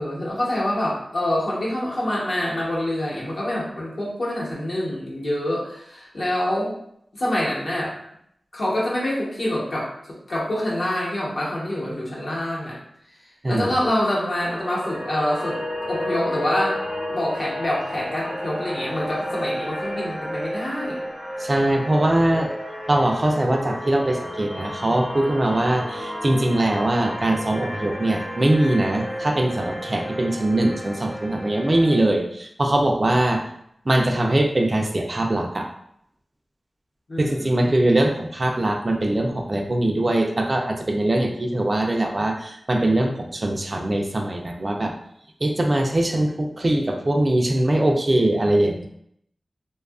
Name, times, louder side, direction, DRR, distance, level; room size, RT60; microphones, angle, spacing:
voice 1, 0.0-6.7 7.1-7.9 8.5-12.8 13.5-15.6 15.9-16.8 17.1-21.0 37.1-37.7, left 1 dB, 60° left, -6 dB, 0.9 m, -26 dB
sound 1, 14.0-32.0, equal, 40° left, 1.1 m, -32 dB
voice 2, 21.4-22.5 22.9-33.4 33.9-35.7 37.2-44.9 45.4-48.9, right 1 dB, 35° right, 2 dB, 0.3 m, -22 dB
2.6 x 2.3 x 2.3 m, 0.72 s
wide cardioid pair, 95°, 0 cm